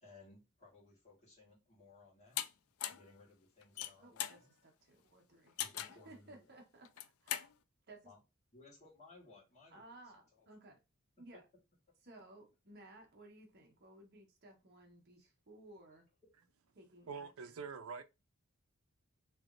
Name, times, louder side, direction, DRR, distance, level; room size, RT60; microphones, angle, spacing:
voice 1, 0.0-2.4 2.9-4.5 5.6-6.5 8.0-8.2 8.5-9.8 10.3-10.5, left 3 dB, 35° left, 1.5 m, -61 dB
sound 1, 2.4-2.5 2.8-3.1 3.6-4.4 5.6-6.0 6.8-7.5, left 11 dB, 85° left, 0.4 m, -39 dB
voice 2, 4.0-5.6 5.9-6.9 7.2-7.5 7.9-8.1 9.7-10.8 11.2-11.4 12.0-16.1 16.7-17.6, right 2 dB, 50° right, 1.1 m, -58 dB
voice 3, 17.1-18.0, right 5 dB, 90° right, 0.5 m, -45 dB
3.3 x 3.0 x 2.5 m
head